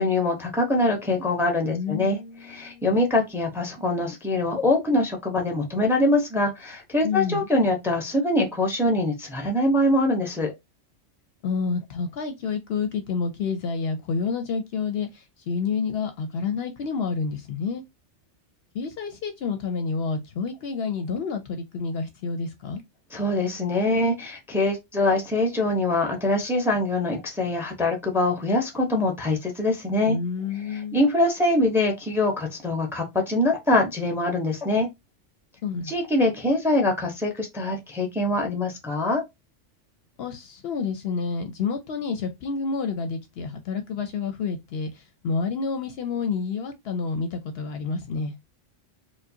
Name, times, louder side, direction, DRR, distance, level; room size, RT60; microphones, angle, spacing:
voice 1, 0.0-2.2 2.5-10.5 23.1-30.2 30.9-34.9 35.9-39.2, left 2 dB, 5° right, 0.6 m, -23 dB
voice 2, 1.7-2.9 7.0-7.5 11.4-17.8 18.7-22.8 30.1-31.0 35.6-35.9 40.2-48.3, left 5 dB, 65° left, 0.7 m, -29 dB
4.5 x 2.1 x 2.7 m
omnidirectional pair, 1.3 m